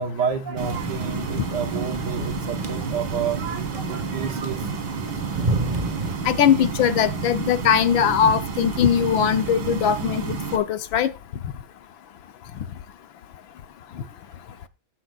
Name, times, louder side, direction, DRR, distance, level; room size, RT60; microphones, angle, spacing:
voice 1, 0.0-4.7 14.0-14.1, right 6 dB, 65° right, 1.7 m, -29 dB
sound 1, 0.6-6.2, right 2 dB, 25° right, 1.2 m, -32 dB
sound 2, 0.6-10.6, right 5 dB, 85° right, 2.5 m, -30 dB
voice 2, 6.2-11.1, left 8 dB, 80° left, 1.6 m, -20 dB
18.0 x 10.0 x 2.4 m
omnidirectional pair, 2.1 m